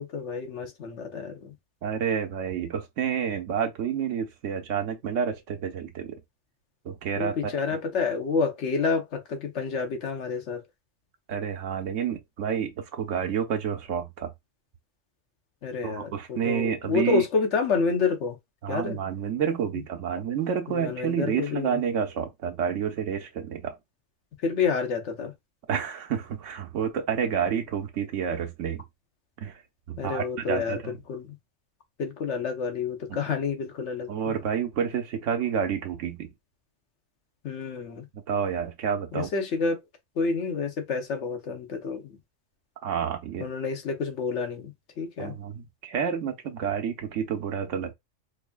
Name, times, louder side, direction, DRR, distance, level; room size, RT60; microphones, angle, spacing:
voice 1, 0.0-1.5 7.2-10.6 15.6-18.4 18.7-19.0 20.7-21.8 24.4-25.3 30.0-30.8 31.1-31.4 32.0-34.3 37.4-38.1 39.1-39.8 40.2-42.2 43.4-45.3, left 5 dB, 70° left, 1.2 m, -29 dB
voice 2, 1.8-6.2 6.8-7.5 11.3-14.3 15.8-17.2 18.6-23.8 25.7-28.8 29.4-29.6 29.9-30.9 33.1-33.3 34.1-36.3 38.1-39.3 42.8-43.5 45.2-47.9, right 7 dB, 85° right, 1.1 m, -29 dB
4.6 x 2.6 x 2.3 m
omnidirectional pair, 1.3 m